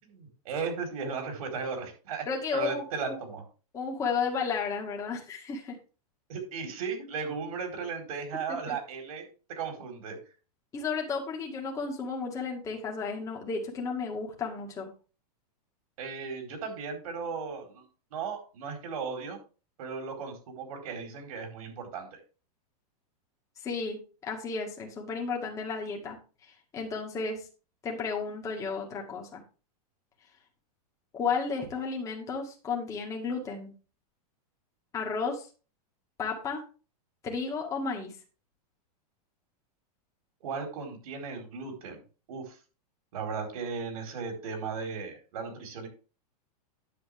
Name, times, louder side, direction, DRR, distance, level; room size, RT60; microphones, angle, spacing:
voice 1, 0.0-2.2 2.5-3.4 6.3-10.2 16.0-19.4 19.8-22.2 40.4-42.0 42.3-42.5 43.1-45.9, right 5 dB, 65° right, 3 dB, 4.4 m, -36 dB
voice 2, 2.3-3.2 3.7-5.8 8.5-8.8 10.7-14.9 23.6-27.4 27.8-29.4 31.1-33.7 34.9-35.5 36.2-36.6 37.2-38.1, left 5 dB, 15° left, 0 dB, 2.0 m, -33 dB
10.0 x 7.6 x 3.5 m, 0.35 s
supercardioid pair, 170°, 20 cm